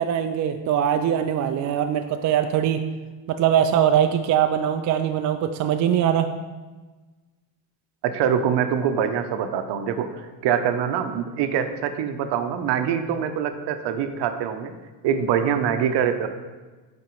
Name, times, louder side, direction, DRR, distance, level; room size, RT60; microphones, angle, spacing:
voice 1, 0.0-2.8 3.3-6.3, right 9 dB, 40° right, 7 dB, 0.4 m, -22 dB
voice 2, 8.0-14.7 15.0-16.3, right 8 dB, 60° right, 8 dB, 0.8 m, -24 dB
8.3 x 4.3 x 3.1 m, 1.3 s
supercardioid pair, 90°, 48 cm